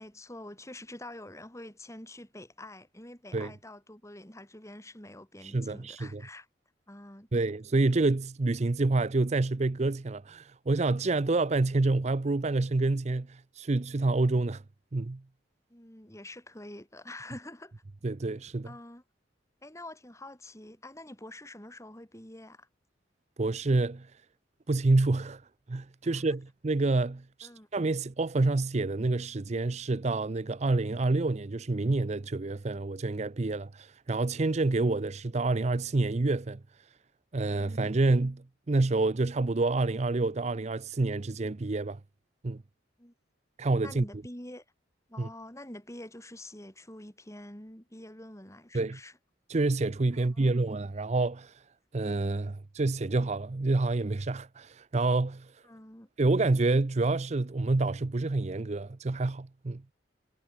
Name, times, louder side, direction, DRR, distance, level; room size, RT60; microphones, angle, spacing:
voice 1, 0.0-6.5 6.9-7.5 15.7-17.7 18.6-19.0 19.6-22.7 26.0-26.3 27.4-27.7 37.5-37.8 43.0-43.1 43.8-44.6 45.1-49.2 50.1-50.6 55.6-56.1, left 1 dB, 15° left, 4.6 m, -46 dB
voice 2, 5.4-6.2 7.3-14.6 14.9-15.2 18.0-18.7 23.4-24.1 24.7-25.4 25.7-36.6 37.3-42.0 42.4-42.6 43.6-44.0 45.2-45.3 48.7-49.0 49.5-51.5 51.9-55.5 56.2-59.8, right 2 dB, 35° right, 0.6 m, -28 dB
head